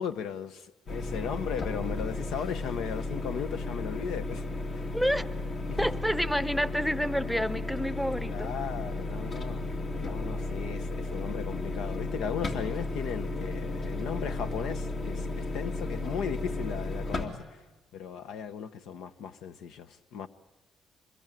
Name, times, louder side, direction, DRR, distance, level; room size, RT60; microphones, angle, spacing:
voice 1, 0.0-4.4 4.7-4.9 5.7-5.9 8.3-9.7 10.0-17.6 17.9-20.3, left 7 dB, 85° left, 0.9 m, -37 dB
sound 1, 0.9-17.2, left 2 dB, 55° left, 2.7 m, -34 dB
voice 2, 4.9-5.3 5.8-8.5, equal, 5° left, 0.8 m, -29 dB
26.0 x 21.5 x 9.1 m
cardioid pair, 90°, 0 cm